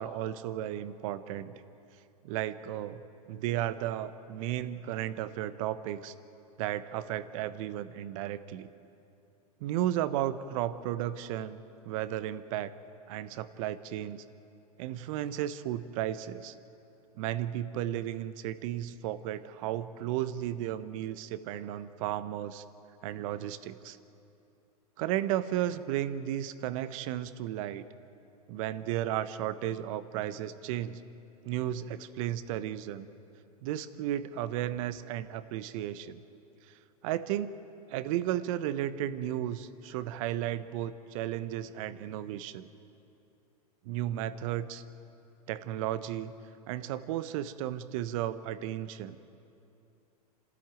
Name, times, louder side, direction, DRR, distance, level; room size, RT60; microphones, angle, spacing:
voice 1, 0.0-1.5 2.2-3.0 3.3-6.1 6.6-8.7 9.6-12.7 13.1-14.2 14.8-16.5 17.2-22.6 23.0-24.0 25.0-27.8 28.5-31.0 31.4-33.1 33.6-36.2 37.0-37.6 37.9-42.7 43.8-44.8 45.5-46.3 46.7-49.2, right 12 dB, 55° right, 13 dB, 1.1 m, -34 dB
27.5 x 13.5 x 9.2 m, 2.8 s
hypercardioid pair, 110°, 20 cm